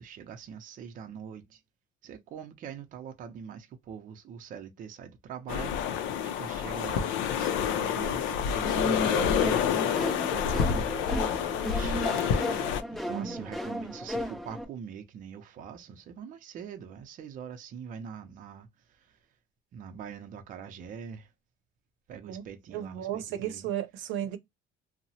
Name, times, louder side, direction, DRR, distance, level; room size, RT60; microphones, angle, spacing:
voice 1, 0.0-1.6 2.0-11.1 11.7-19.2 19.7-21.3 22.1-23.7, right 7 dB, 45° right, 0.5 m, -44 dB
sound 1, 5.5-12.8, left 8 dB, 90° left, 0.5 m, -28 dB
sound 2, 8.6-14.6, equal, ahead, 0.6 m, -34 dB
voice 2, 13.1-13.5 22.3-22.4 22.7-24.4, right 10 dB, 85° right, 0.7 m, -34 dB
2.8 x 2.0 x 2.7 m
cardioid pair, 145°, 19 cm